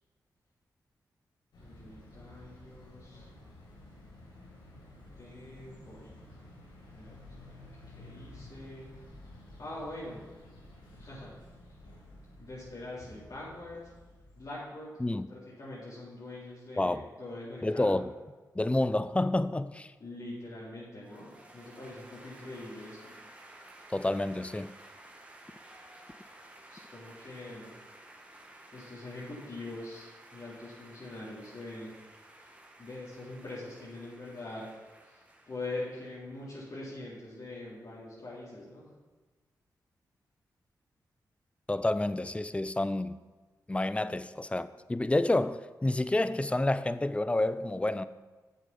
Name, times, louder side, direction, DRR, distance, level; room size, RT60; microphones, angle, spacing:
sound 1, 1.5-14.4, left 1 dB, 85° left, 2.5 m, -52 dB
voice 1, 1.6-3.3 5.2-6.2 6.9-9.1 9.6-10.2 11.0-11.3 12.4-13.8 14.4-18.1 20.0-23.1 26.7-27.7 28.7-32.0 32.3-32.5 32.8-34.7 35.0-38.9, left 2 dB, 60° left, 3.6 m, -43 dB
voice 2, 17.6-18.1 18.5-19.9 23.9-24.7 41.7-43.2 43.7-48.1, left 2 dB, 15° left, 0.5 m, -29 dB
sound 2, 21.0-36.5, right 1 dB, 15° right, 1.8 m, -54 dB
8.3 x 7.4 x 5.9 m
cardioid pair, 50°, 7 cm